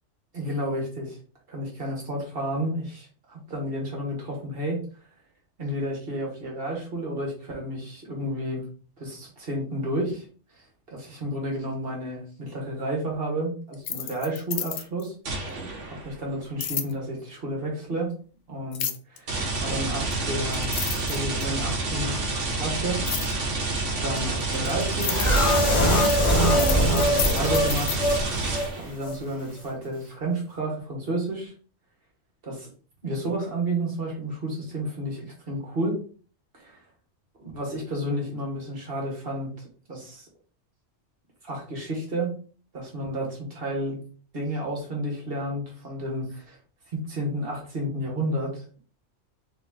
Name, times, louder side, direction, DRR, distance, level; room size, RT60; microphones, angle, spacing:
voice 1, 0.3-1.2 1.5-4.8 5.6-8.6 9.0-10.2 10.9-15.1 15.9-18.1 18.5-20.7 21.0-22.2 22.6-23.0 24.0-25.3 25.7-28.4 28.8-31.5 32.5-32.7 33.0-36.0 36.5-36.8 37.4-39.5 39.9-40.3 41.4-42.3 42.7-44.0 44.3-46.6 46.9-48.8, right 1 dB, 50° right, -1 dB, 1.7 m, -31 dB
sound 1, 13.7-15.1 16.6-16.9 18.7-19.2 20.1-20.2 20.5-21.6 23.1-23.3 24.2-28.0, left 8 dB, 60° left, 0.7 m, -31 dB
sound 2, 15.3-16.2 19.3-29.0, right 3 dB, 85° right, 1.4 m, -28 dB
sound 3, 25.0-28.2 28.5-28.7 29.0-29.2, equal, 30° left, 1.1 m, -22 dB
3.7 x 3.0 x 3.6 m, 0.40 s
omnidirectional pair, 1.2 m